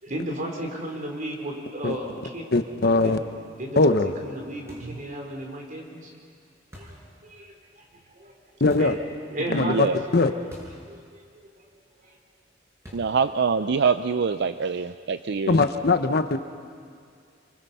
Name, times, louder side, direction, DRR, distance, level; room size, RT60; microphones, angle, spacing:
voice 1, 0.0-2.5 2.8-3.2 3.6-6.1 6.7-6.9 7.2-7.8 8.1-8.3 8.8-9.0 9.3-10.3 10.9-11.6 12.0-12.2, right 1 dB, 45° right, 1 dB, 4.3 m, -34 dB
voice 2, 2.5-3.2 3.8-4.1 8.6-8.9 9.5-9.9 10.1-10.3 15.5-16.4, left 3 dB, 55° left, 9 dB, 1.0 m, -20 dB
sound 1, 4.7-5.1 6.7-7.1 8.7-9.0 10.5-10.9 11.1-11.2 12.8-13.2, equal, 15° right, 7.2 m, -45 dB
voice 3, 9.5-10.0 12.9-15.6, right 5 dB, 65° right, 11 dB, 0.5 m, -24 dB
28.5 x 24.5 x 5.6 m, 2.2 s
head